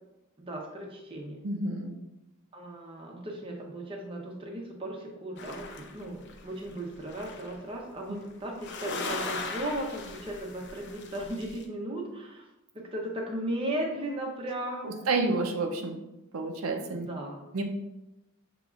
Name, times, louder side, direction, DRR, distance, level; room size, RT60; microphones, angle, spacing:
voice 1, 0.4-1.4 2.5-12.4 12.9-14.9 16.9-17.4, right 1 dB, 25° right, -1 dB, 0.7 m, -36 dB
voice 2, 1.4-2.0 14.8-16.0 16.3-17.1 17.5-17.6, right 3 dB, 80° right, 2 dB, 0.5 m, -29 dB
sound 1, 5.4-7.6 8.5-11.6, left 3 dB, 50° left, 0.5 m, -39 dB
6.4 x 2.9 x 2.4 m, 0.96 s
head